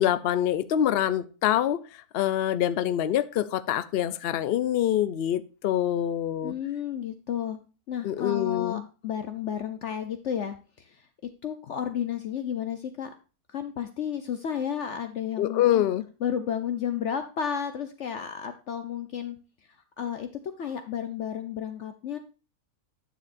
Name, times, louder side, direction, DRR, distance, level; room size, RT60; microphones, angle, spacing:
voice 1, 0.0-1.8 2.1-6.5 8.0-8.8 15.4-16.0, left 11 dB, 85° left, 13 dB, 0.5 m, -25 dB
voice 2, 6.4-7.6 7.9-11.0 11.4-13.1 13.5-15.8 16.2-19.4 20.0-20.3 20.6-22.2, left 8 dB, 60° left, 8 dB, 0.8 m, -32 dB
11.0 x 6.9 x 2.5 m, 0.33 s
omnidirectional pair, 1.6 m